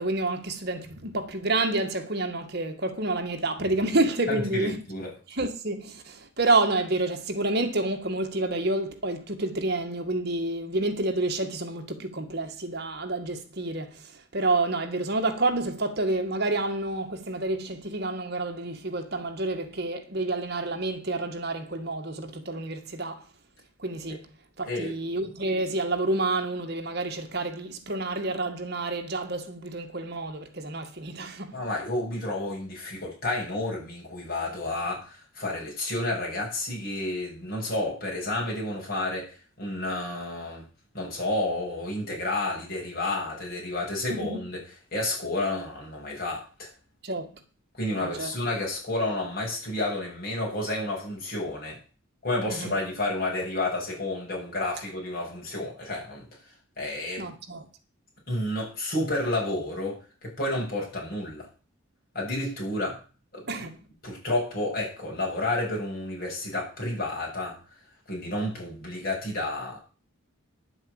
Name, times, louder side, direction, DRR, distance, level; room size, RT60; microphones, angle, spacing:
voice 1, 0.0-4.8 5.3-23.2 23.8-24.3 24.6-31.6 44.1-44.4 47.0-47.4 48.0-48.3 52.5-52.7 57.2-57.7 63.5-63.7, right 2 dB, 50° right, 2.1 m, -29 dB
voice 2, 4.3-5.1 24.6-25.1 31.5-40.6 40.9-44.6 44.9-46.7 47.7-51.8 52.2-57.3 58.3-61.5 62.1-63.0 63.3-63.6 64.0-67.8 68.1-69.8, left 2 dB, 45° left, 7.1 m, -31 dB
10.5 x 7.7 x 8.1 m
head